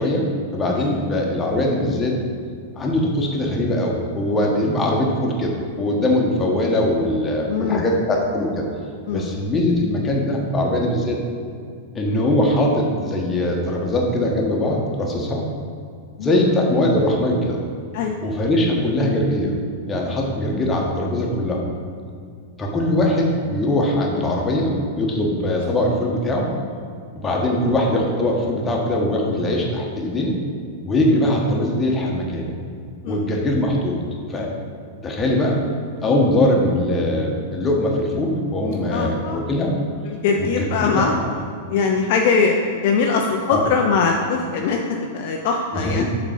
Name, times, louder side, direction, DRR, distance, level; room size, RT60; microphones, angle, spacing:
voice 1, 0.0-2.2 2.7-8.6 9.1-11.2 11.9-15.4 16.2-17.6 18.2-19.5 19.9-21.6 22.6-26.5 27.1-30.4 30.8-32.5 33.1-34.0 34.3-34.5 35.0-35.6 36.0-39.7 40.4-41.3 43.5-43.7 45.7-46.0, left 1 dB, 15° left, -1 dB, 1.3 m, -21 dB
voice 2, 7.5-7.8 9.1-9.3 16.2-16.5 17.9-18.1 31.1-31.3 33.0-33.2 38.9-39.4 40.1-41.1 41.7-46.0, left 5 dB, 50° left, 1 dB, 0.5 m, -21 dB
7.2 x 4.0 x 5.3 m, 2.3 s
figure-of-eight pair, 95°, 0 cm